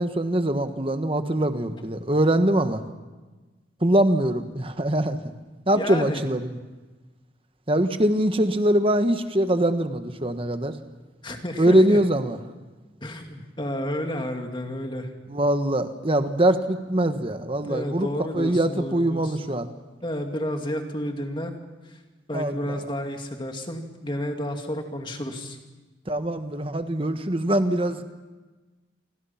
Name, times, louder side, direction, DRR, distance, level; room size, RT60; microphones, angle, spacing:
voice 1, 0.0-2.8 3.8-5.2 5.7-6.6 7.7-10.8 11.6-12.4 15.3-18.1 18.3-19.7 22.3-22.7 26.1-28.0, right 1 dB, 30° right, 8 dB, 1.4 m, -23 dB
voice 2, 5.7-6.2 11.2-12.0 13.0-15.1 17.6-19.4 20.0-21.5 21.9-22.0 22.3-25.6, left 1 dB, 25° left, 4 dB, 2.2 m, -31 dB
28.0 x 24.5 x 5.8 m, 1.2 s
head